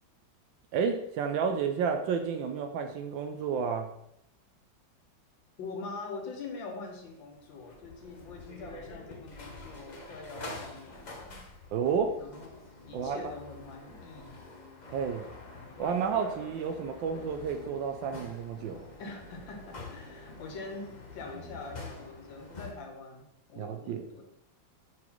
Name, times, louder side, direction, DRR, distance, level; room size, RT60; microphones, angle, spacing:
voice 1, 0.7-3.9 11.7-12.2 12.9-13.3 14.9-15.3 15.8-18.9 23.6-24.1, right 6 dB, 80° right, 5 dB, 1.3 m, -31 dB
voice 2, 5.6-11.4 12.2-12.5 12.8-14.4 19.0-24.2, left 3 dB, 75° left, 3 dB, 1.8 m, -44 dB
sound 1, 7.2-22.7, left 2 dB, 40° left, 0.6 m, -46 dB
5.9 x 4.0 x 4.5 m, 0.78 s
omnidirectional pair, 2.1 m